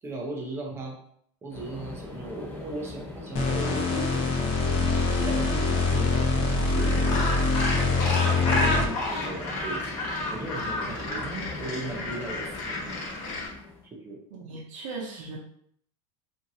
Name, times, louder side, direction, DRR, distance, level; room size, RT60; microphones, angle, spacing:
voice 1, 0.0-1.0 1.4-4.5 5.1-7.5 8.0-9.8 10.3-12.9 13.9-14.2, right 2 dB, 15° right, 0 dB, 0.5 m, -37 dB
sound 1, 1.5-13.9, left 2 dB, 10° left, 0.9 m, -41 dB
sound 2, 3.3-9.1, left 3 dB, 35° left, 0.6 m, -24 dB
Gull seagull, 6.7-13.5, left 1 dB, 70° left, 1.1 m, -31 dB
voice 2, 14.3-15.4, right 3 dB, 75° right, -4 dB, 0.7 m, -38 dB
2.9 x 2.6 x 2.7 m, 0.66 s
supercardioid pair, 155°, 17 cm